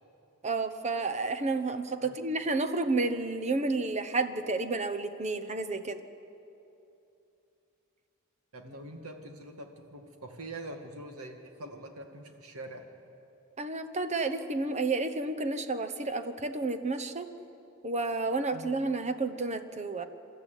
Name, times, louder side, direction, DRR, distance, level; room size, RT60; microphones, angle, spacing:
voice 1, 0.4-6.0 13.6-17.3 17.8-20.0, right 3 dB, 30° right, 10 dB, 1.0 m, -31 dB
voice 2, 8.5-12.8 18.5-18.7, right 1 dB, 80° right, 4 dB, 2.2 m, -44 dB
28.0 x 13.0 x 9.2 m, 2.8 s
head